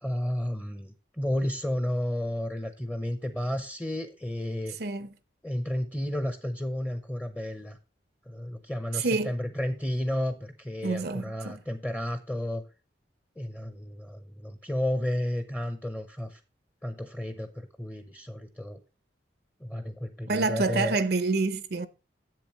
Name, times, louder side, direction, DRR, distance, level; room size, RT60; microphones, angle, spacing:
voice 1, 0.0-4.8 5.4-7.8 8.3-12.6 13.4-16.4 16.8-18.8 19.6-21.0, left 1 dB, 10° left, 0.7 m, -32 dB
voice 2, 4.7-5.1 8.9-9.3 10.8-11.6 20.3-21.9, right 3 dB, 55° right, 0.6 m, -27 dB
10.5 x 7.8 x 3.1 m
head